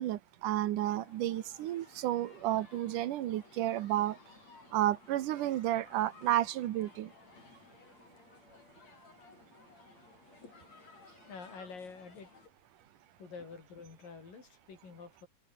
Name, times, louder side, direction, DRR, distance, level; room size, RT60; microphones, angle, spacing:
voice 1, 0.0-4.2 4.7-7.1, right 13 dB, 75° right, 2.6 m, -32 dB
sound 1, 0.8-12.5, left 4 dB, 55° left, 6.8 m, -58 dB
voice 2, 11.3-12.3 13.2-15.3, left 5 dB, 85° left, 7.3 m, -48 dB
open air
omnidirectional pair, 3.8 m